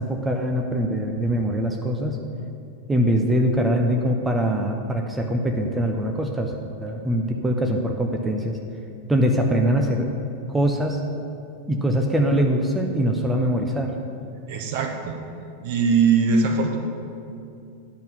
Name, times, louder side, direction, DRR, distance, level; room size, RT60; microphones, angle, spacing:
voice 1, 0.0-2.2 2.9-6.5 6.8-8.6 9.1-10.1 10.5-11.0 11.7-13.9, equal, 10° right, 2 dB, 0.7 m, -23 dB
voice 2, 14.5-15.2 15.6-16.8, right 5 dB, 50° right, 3 dB, 1.0 m, -21 dB
10.0 x 4.0 x 7.3 m, 2.5 s
figure-of-eight pair, 90°, 0 cm